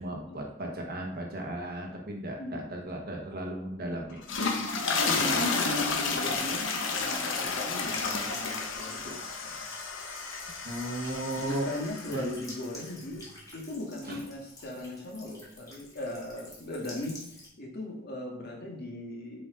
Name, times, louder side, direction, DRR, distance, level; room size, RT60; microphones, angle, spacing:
voice 1, 0.0-4.6 5.2-5.4 10.6-11.7 12.1-12.3 14.1-14.2, right 1 dB, 50° right, 1 dB, 1.2 m, -36 dB
voice 2, 2.4-2.7 5.0-9.6 11.4-13.3 13.5-17.2 17.6-19.4, left 1 dB, 50° left, -1 dB, 1.8 m, -38 dB
sound 1, 4.1-12.4, left 4 dB, 70° left, 1.1 m, -31 dB
Buzz / Water tap faucet / Trickle dribble, 4.3-17.5, left 2 dB, 20° left, 2.0 m, -50 dB
7.6 x 5.0 x 3.8 m, 0.77 s
head